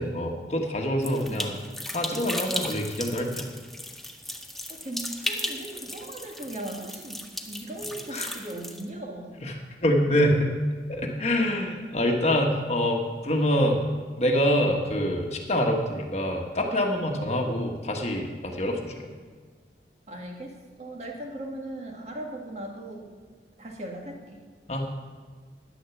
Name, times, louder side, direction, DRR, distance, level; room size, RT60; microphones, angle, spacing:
voice 1, 0.0-1.5 1.9-3.5 8.1-8.3 9.4-10.5 10.9-13.9 14.2-19.1 24.7-24.9, equal, 40° left, 2 dB, 1.3 m, -26 dB
sound 1, 1.0-8.8, left 1 dB, ahead, 0.7 m, -36 dB
voice 2, 1.0-1.5 4.2-4.4 4.7-9.4 17.0-17.3 20.1-23.1 23.6-24.4, right 1 dB, 40° right, 1 dB, 1.8 m, -38 dB
10.0 x 10.0 x 7.1 m, 1.5 s
head